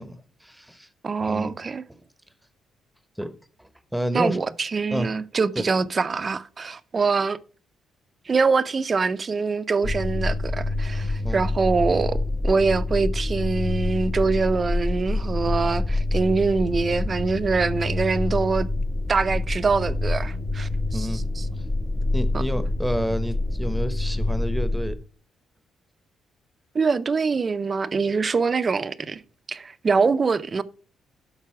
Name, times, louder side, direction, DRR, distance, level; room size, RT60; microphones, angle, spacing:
voice 1, 0.0-0.9 1.2-1.5 1.9-2.0 3.2-4.4 4.9-5.1 5.5-5.6 11.2-11.4 20.9-21.2 21.6-21.7 22.1-25.0, equal, 5° right, 0.9 m, -30 dB
voice 2, 1.0-1.8 4.1-7.4 8.3-18.7 19.1-21.5 22.3-22.4 26.7-29.2 29.5-30.6, right 4 dB, 35° right, 0.5 m, -24 dB
sound 1, 9.8-24.9, left 2 dB, 30° left, 1.0 m, -26 dB
12.0 x 4.1 x 4.8 m
cardioid pair, 90°, 0 cm